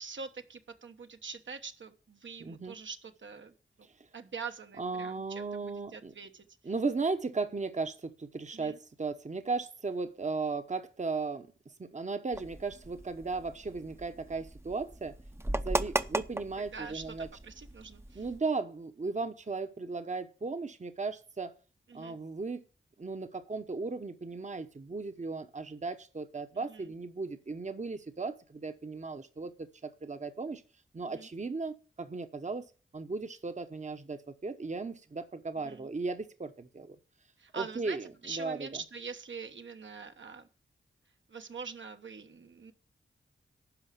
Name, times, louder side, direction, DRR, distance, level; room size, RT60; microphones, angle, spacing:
voice 1, 0.0-3.5 4.1-6.5 8.5-8.8 16.7-18.2 21.9-22.2 26.7-26.9 31.0-31.3 35.6-35.9 37.4-40.5 41.3-42.7, right 5 dB, 65° right, 6 dB, 1.2 m, -44 dB
voice 2, 2.4-2.8 4.8-6.1 6.6-11.5 11.8-15.1 15.5-17.3 18.1-21.5 21.9-22.6 23.0-30.6 30.9-32.6 32.9-37.0 37.5-38.7, right 4 dB, 35° right, 9 dB, 1.0 m, -36 dB
sound 1, 12.3-18.4, right 1 dB, 10° right, 0.7 m, -37 dB
12.0 x 4.9 x 8.2 m, 0.37 s
cardioid pair, 55°, 20 cm